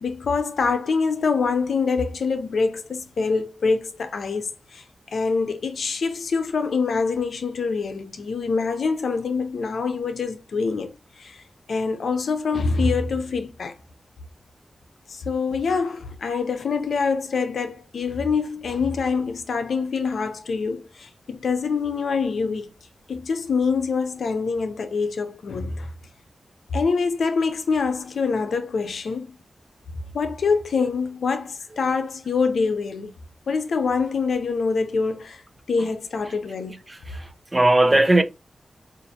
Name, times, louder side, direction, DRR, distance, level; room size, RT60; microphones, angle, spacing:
voice 1, 0.0-4.8 5.1-11.4 11.7-13.7 15.1-22.7 23.1-25.9 26.7-29.4 30.1-33.1 33.5-35.4 35.7-36.8, left 4 dB, 85° left, 0.6 m, -25 dB
voice 2, 36.9-38.2, right 1 dB, 20° right, 0.5 m, -19 dB
5.2 x 2.5 x 2.7 m
wide cardioid pair, 135°, 0 cm